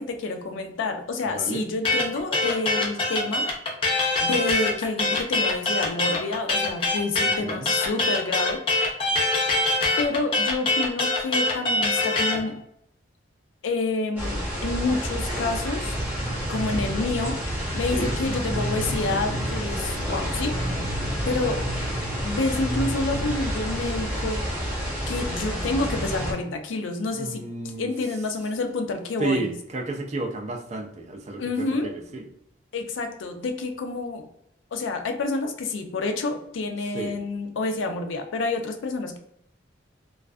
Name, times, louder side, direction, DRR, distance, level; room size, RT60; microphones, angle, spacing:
voice 1, 0.0-3.5 4.2-8.6 10.0-12.5 13.6-16.0 16.5-17.3 17.7-20.6 21.3-21.6 22.2-24.4 25.1-27.4 27.8-29.5 31.4-32.0 32.7-34.2 34.7-39.2, left 3 dB, 85° left, 6 dB, 0.4 m, -28 dB
voice 2, 1.3-1.7 7.2-7.7 17.9-18.1 27.1-27.9 29.2-32.2 36.9-37.2, right 2 dB, 35° right, 3 dB, 0.3 m, -31 dB
sound 1, 1.8-12.4, left 2 dB, 30° left, 0.5 m, -23 dB
sound 2, 14.2-26.3, equal, 10° right, 0.8 m, -28 dB
2.5 x 2.3 x 2.2 m, 0.74 s
head